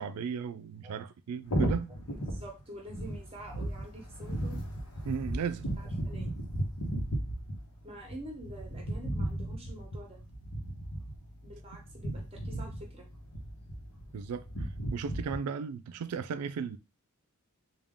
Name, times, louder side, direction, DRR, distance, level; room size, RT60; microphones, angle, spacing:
voice 1, 0.0-1.9 5.1-5.7 14.1-14.5 14.9-16.8, right 6 dB, 85° right, 0.4 m, -35 dB
sound 1, 1.4-15.4, right 1 dB, 90° left, 1.0 m, -36 dB
voice 2, 2.1-4.6 5.8-6.3 7.8-10.2 11.4-13.1, right 1 dB, 25° right, 1.0 m, -47 dB
3.6 x 2.3 x 3.5 m
head